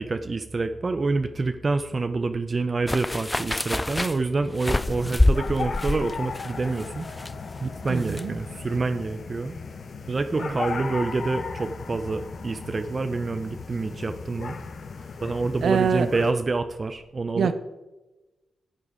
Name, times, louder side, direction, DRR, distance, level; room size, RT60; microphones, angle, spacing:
voice 1, 0.0-7.1 7.6-9.6 10.0-14.5 15.2-17.5, right 3 dB, 40° right, 8 dB, 0.5 m, -27 dB
sound 1, 2.9-8.3 8.5-8.6, left 1 dB, 15° left, 0.3 m, -26 dB
sound 2, 4.7-16.3, left 5 dB, 60° left, 0.9 m, -36 dB
voice 2, 7.9-8.3 10.4-10.6 15.6-16.1 17.3-17.5, right 6 dB, 75° right, 11 dB, 0.8 m, -24 dB
12.0 x 7.7 x 4.9 m, 1.1 s
cardioid pair, 75°, 0 cm